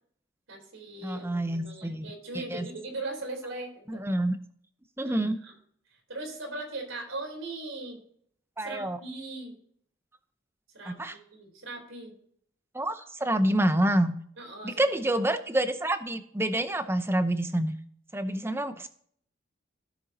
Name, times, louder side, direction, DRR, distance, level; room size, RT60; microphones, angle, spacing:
voice 1, 0.5-4.1 5.0-5.5 5.9-8.0 8.6-9.5 10.7-12.2 14.4-15.2, right 2 dB, 80° right, 2 dB, 3.7 m, -40 dB
voice 2, 1.0-2.0 2.3-2.7 3.9-4.4 5.0-5.4 8.6-9.0 10.8-11.2 12.7-14.1 14.6-17.7 18.1-18.9, right 1 dB, 10° right, 10 dB, 0.7 m, -27 dB
16.5 x 7.0 x 2.8 m, 0.63 s
head